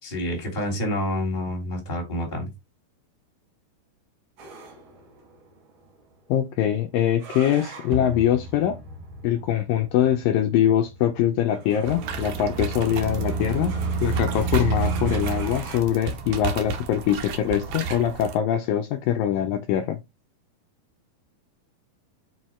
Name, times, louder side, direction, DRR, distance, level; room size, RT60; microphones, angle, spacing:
voice 1, 0.0-2.5, left 1 dB, 15° left, 2.0 m, -28 dB
sound 1, 4.4-15.8, right 1 dB, 50° right, 2.8 m, -41 dB
voice 2, 6.3-8.8 9.2-13.7 14.0-20.0, left 10 dB, 80° left, 2.1 m, -23 dB
sound 2, 11.8-18.4, right 4 dB, 70° right, 2.1 m, -29 dB
5.6 x 4.6 x 4.3 m
omnidirectional pair, 4.4 m